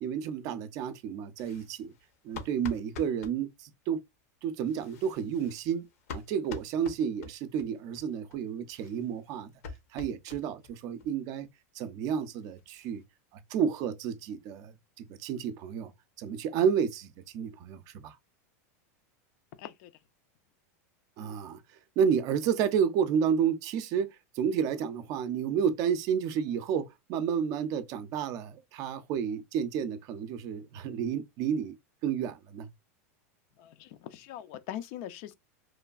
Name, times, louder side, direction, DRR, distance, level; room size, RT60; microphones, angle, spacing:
voice 1, 0.0-1.9 2.2-4.0 4.4-5.9 6.1-9.5 9.9-11.5 11.7-13.0 13.5-15.9 16.2-18.2 21.2-21.6 22.0-24.1 24.3-31.8 32.0-32.7, right 7 dB, 45° right, 0.4 m, -31 dB
sound 1, 1.4-3.4 4.6-7.7 8.0-8.1 8.3-8.4 8.7-10.7 11.0-11.1 11.4-11.5 11.9-12.0 12.2-13.0, left 4 dB, 70° left, 0.8 m, -46 dB
voice 2, 19.6-19.9 33.6-35.3, left 11 dB, 55° left, 0.4 m, -42 dB
3.1 x 2.2 x 2.3 m
supercardioid pair, 125°, 8 cm